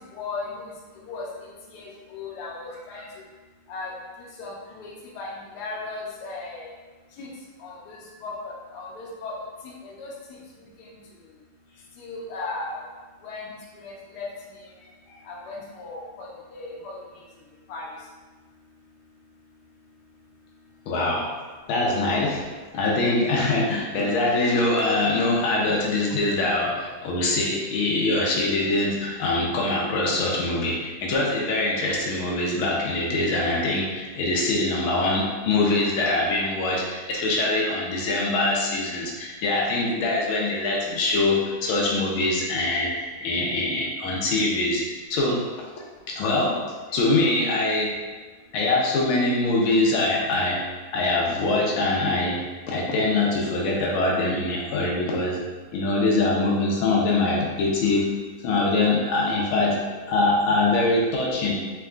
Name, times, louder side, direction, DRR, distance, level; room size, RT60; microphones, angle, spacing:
voice 1, 0.1-0.7 1.1-1.2 1.7-3.1 3.7-3.9 4.4-4.9 5.1-5.3 5.5-6.7 7.2-7.3 7.6-9.3 9.8-10.1 12.0-12.8 13.2-13.5 13.8-14.3 15.3-16.9 17.7-17.9, left 3 dB, 60° left, -3 dB, 1.2 m, -36 dB
voice 2, 20.9-21.2 21.7-22.4 22.7-44.8 45.1-45.4 46.1-46.6 46.9-47.9 48.5-50.6 50.9-52.4 52.7-55.4 55.7-58.1 58.4-59.8 60.1-61.5, left 2 dB, 90° left, -2 dB, 1.6 m, -23 dB
4.5 x 3.3 x 2.4 m, 1.3 s
omnidirectional pair, 2.2 m